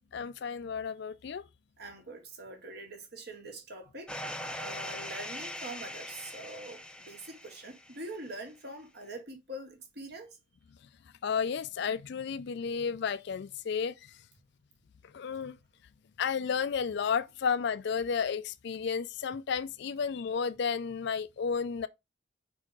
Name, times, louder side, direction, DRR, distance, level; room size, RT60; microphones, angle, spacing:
voice 1, 0.1-1.4 11.2-14.0 15.1-15.6 16.2-21.9, left 6 dB, 60° left, 0.4 m, -32 dB
voice 2, 1.8-4.1 4.6-10.4, right 1 dB, 55° right, 1.9 m, -44 dB
sound 1, 4.1-8.1, left 1 dB, 5° left, 0.6 m, -41 dB
4.8 x 4.5 x 4.8 m
head